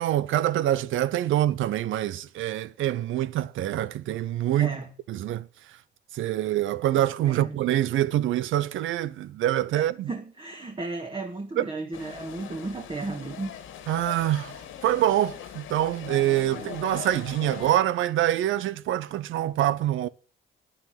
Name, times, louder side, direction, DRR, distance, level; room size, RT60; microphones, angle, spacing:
voice 1, 0.0-4.8 5.1-5.5 6.1-10.1 11.6-11.7 13.9-14.6 14.8-20.1, right 13 dB, 80° right, 0.8 m, -25 dB
voice 2, 4.5-4.9 7.3-7.6 9.7-13.5, right 3 dB, 25° right, 1.8 m, -34 dB
sound 1, 11.9-17.7, left 9 dB, 85° left, 2.2 m, -41 dB
9.4 x 9.0 x 9.1 m
cardioid pair, 90°, 20 cm